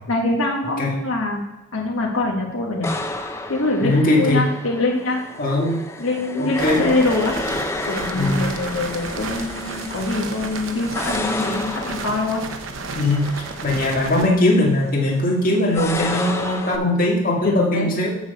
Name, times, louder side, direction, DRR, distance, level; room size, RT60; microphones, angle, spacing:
voice 1, 0.1-1.4 1.7-2.9 3.5-5.2 6.0-7.4 7.9-12.4 14.1-14.2 17.4-17.9, left 2 dB, 75° left, -1 dB, 1.5 m, -24 dB
sound 1, 2.8-16.8, left 2 dB, 10° left, 0.5 m, -32 dB
voice 2, 3.8-4.5 5.4-5.8 6.4-6.8 8.2-8.4 12.9-13.3 13.6-18.1, left 1 dB, 40° left, -2 dB, 1.9 m, -20 dB
sound 2, 6.6-14.3, right 4 dB, 65° right, 0.8 m, -33 dB
7.3 x 5.2 x 6.8 m, 1.1 s
head